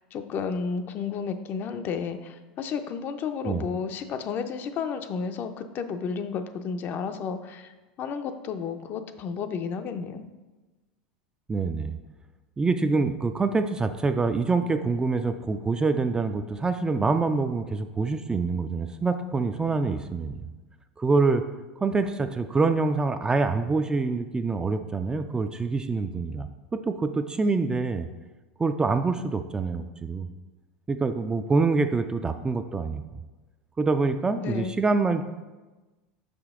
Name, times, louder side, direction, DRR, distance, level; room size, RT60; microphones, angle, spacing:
voice 1, 0.1-7.7 8.0-10.3 34.4-34.8, left 6 dB, 45° left, 8 dB, 0.5 m, -32 dB
voice 2, 11.5-11.9 12.6-20.5 21.0-21.4 21.8-28.1 28.6-30.3 30.9-33.2 33.8-35.2, right 3 dB, 15° right, 8 dB, 0.3 m, -26 dB
5.6 x 5.1 x 3.6 m, 1.2 s
supercardioid pair, 105°, 5 cm